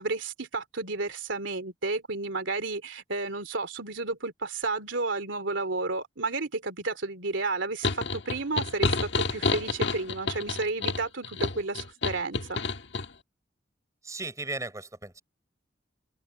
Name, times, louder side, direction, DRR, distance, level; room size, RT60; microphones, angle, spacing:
voice 1, 0.0-12.6, right 3 dB, 85° right, 3.0 m, -32 dB
sound 1, 7.8-13.1, left 4 dB, 70° left, 1.4 m, -29 dB
voice 2, 14.0-15.2, right 2 dB, 15° right, 4.8 m, -36 dB
open air
head